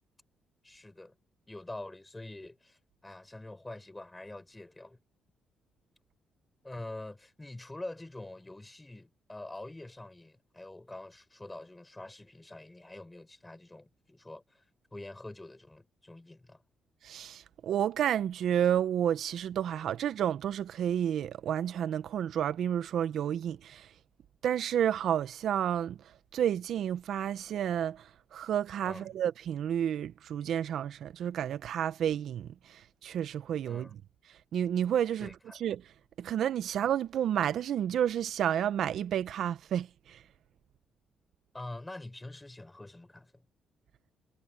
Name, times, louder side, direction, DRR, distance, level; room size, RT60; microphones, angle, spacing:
voice 1, 0.6-1.1 1.5-5.0 6.6-14.6 14.9-16.6 28.8-29.2 33.7-33.9 35.2-35.6 41.5-43.3, left 2 dB, 15° left, 7.6 m, -45 dB
voice 2, 17.0-23.9 24.4-26.0 26.3-28.0 28.3-33.9 34.5-35.3 35.6-35.8 36.2-40.2, right 10 dB, 70° right, 1.0 m, -30 dB
cardioid pair, 90°, 0 cm